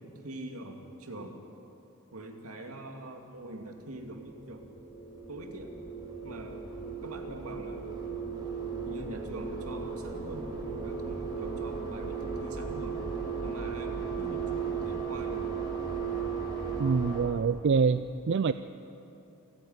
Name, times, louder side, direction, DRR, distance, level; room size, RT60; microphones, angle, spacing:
voice 1, 0.0-1.3 2.1-4.6 5.3-5.7 6.2-6.7 7.0-8.0 8.9-13.0 13.4-15.5, right 1 dB, 85° right, 3 dB, 2.3 m, -43 dB
sound 1, 3.8-17.2, right 5 dB, 20° right, 4.0 m, -36 dB
voice 2, 16.8-18.5, right 5 dB, 55° right, 12 dB, 0.4 m, -26 dB
28.5 x 9.7 x 9.5 m, 2.8 s
head